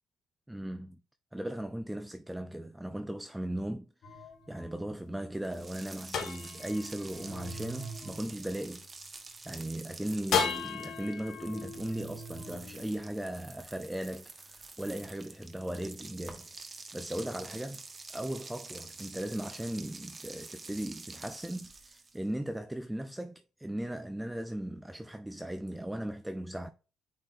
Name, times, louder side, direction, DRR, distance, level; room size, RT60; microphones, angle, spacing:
voice 1, 0.5-1.0 1.3-8.8 9.1-16.5 16.9-17.8 18.1-26.7, right 1 dB, 10° right, 0.5 m, -38 dB
sound 1, 4.0-9.3 10.3-13.7, left 5 dB, 75° left, 1.5 m, -37 dB
sound 2, 5.4-22.3, right 3 dB, 30° right, 1.3 m, -48 dB
8.8 x 4.2 x 2.6 m
cardioid pair, 90°, 0 cm